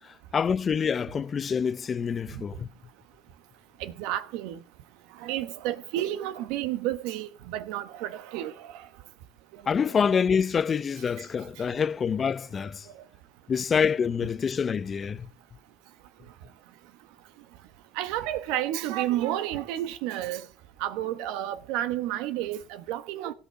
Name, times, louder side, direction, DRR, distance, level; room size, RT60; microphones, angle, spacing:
voice 1, 0.3-2.7 9.7-12.9 13.5-15.3, left 6 dB, 35° left, 0.5 m, -26 dB
voice 2, 3.8-4.6 5.2-8.8 18.0-20.5 20.8-23.3, right 13 dB, 80° right, 1.2 m, -31 dB
17.0 x 5.8 x 6.9 m
supercardioid pair, 85°, 0 cm